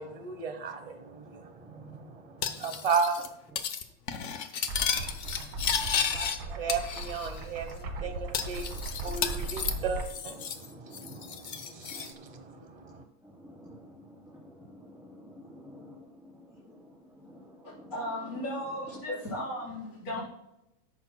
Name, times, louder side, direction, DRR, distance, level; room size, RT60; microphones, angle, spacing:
voice 1, 0.0-3.3 6.6-13.0, right 5 dB, 35° right, 7 dB, 0.6 m, -35 dB
voice 2, 1.2-2.9 4.1-4.2 5.0-6.6 7.2-7.3 8.0-8.1 8.4-9.8 10.4-11.6 11.9-12.0 12.2-12.4 12.8-19.6, right 1 dB, ahead, -9 dB, 3.2 m, -51 dB
Cutlery silverware, 2.4-3.3 3.6-3.8 4.1-6.4 6.7-7.4 7.7-7.8 8.3-10.7 10.9-12.1, left 7 dB, 70° left, 0.7 m, -33 dB
sound 1, 4.7-10.1, right 2 dB, 75° right, 2.2 m, -38 dB
voice 3, 17.9-20.2, left 1 dB, 40° left, -8 dB, 4.9 m, -35 dB
13.5 x 10.5 x 2.2 m, 0.84 s
omnidirectional pair, 2.3 m